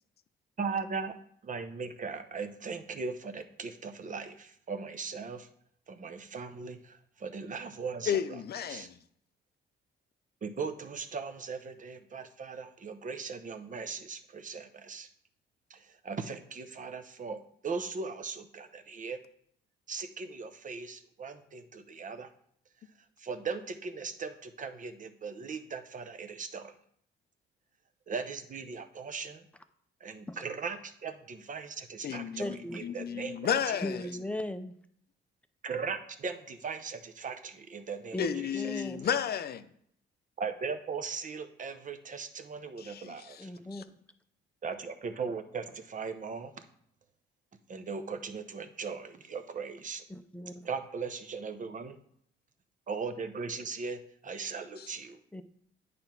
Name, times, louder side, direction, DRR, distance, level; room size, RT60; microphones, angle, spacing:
voice 1, 0.6-1.1 1.5-5.5 5.9-8.2 8.7-8.9 10.4-15.1 15.7-19.2 19.9-22.3 23.2-26.7 28.1-29.4 30.0-32.5 32.7-33.8 35.6-38.8 40.4-43.5 44.6-46.5 47.7-50.0 50.6-52.0 52.9-55.2, right 5 dB, 40° right, 0.8 m, -38 dB
voice 2, 8.1-8.9 32.0-32.5 32.8-34.0 38.2-39.6 42.8-43.4 54.8-54.9, left 8 dB, 55° left, 0.6 m, -32 dB
voice 3, 32.4-32.8 33.8-34.8 38.1-39.1 43.4-43.8 50.1-50.7 55.3-55.4, left 1 dB, 5° left, 0.6 m, -37 dB
8.8 x 3.4 x 5.8 m
cardioid pair, 90°, 20 cm